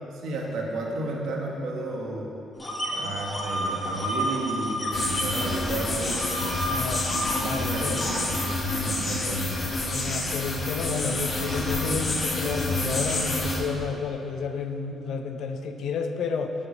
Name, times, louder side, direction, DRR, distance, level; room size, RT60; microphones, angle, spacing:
voice 1, 0.2-2.3 2.9-6.2 7.1-9.5 9.8-10.0, right 2 dB, 80° right, 0 dB, 1.3 m, -32 dB
sound 1, 2.6-5.5 5.7-8.4, equal, 20° left, 1.5 m, -31 dB
sound 2, 4.9-13.6, left 2 dB, 40° left, 1.3 m, -28 dB
voice 2, 6.6-7.1 7.4-8.0 9.9-16.5, left 5 dB, 70° left, 6 dB, 0.6 m, -31 dB
7.0 x 6.7 x 5.3 m, 2.8 s
cardioid pair, 90°, 0 cm